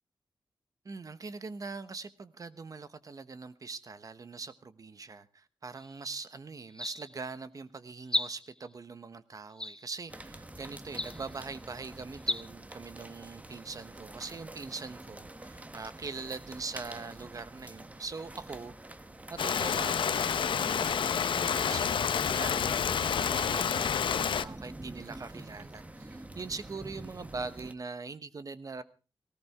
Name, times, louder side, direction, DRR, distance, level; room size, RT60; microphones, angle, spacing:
voice 1, 0.8-18.7 19.3-28.8, right 4 dB, 45° right, 1.1 m, -42 dB
sound 1, 5.8-6.0 6.7-7.3 8.0-8.7 9.6-10.1 10.9-11.4 12.1-12.4, left 1 dB, 10° left, 0.8 m, -35 dB
sound 2, 10.1-27.7, right 1 dB, 15° right, 1.1 m, -47 dB
Rain, 19.4-24.4, left 7 dB, 85° left, 0.7 m, -29 dB
18.5 x 16.5 x 3.7 m
wide cardioid pair, 120°, 8 cm